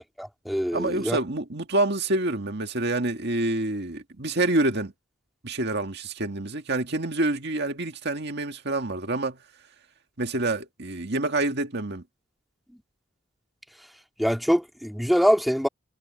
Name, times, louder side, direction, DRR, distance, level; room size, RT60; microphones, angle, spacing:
voice 1, 0.2-1.2 14.2-15.7, equal, ahead, 2.0 m, -23 dB
voice 2, 0.7-4.9 5.4-9.4 10.2-12.0, right 2 dB, 60° right, 2.0 m, -27 dB
head